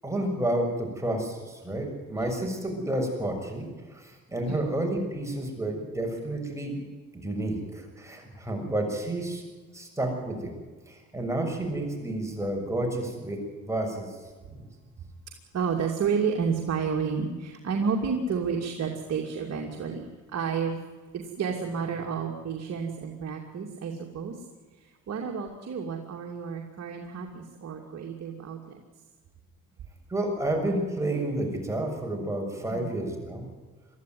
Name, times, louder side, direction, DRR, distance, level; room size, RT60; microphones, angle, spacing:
voice 1, 0.0-6.8 7.1-9.4 9.7-10.5 10.9-14.2 14.5-14.7 30.1-33.5, right 1 dB, 10° right, 1 dB, 6.8 m, -30 dB
voice 2, 15.5-20.8 21.1-24.4 24.8-28.8 32.7-33.0, right 6 dB, 55° right, 1 dB, 2.7 m, -31 dB
22.0 x 14.0 x 9.5 m, 1.4 s
cardioid pair, 90°, 30 cm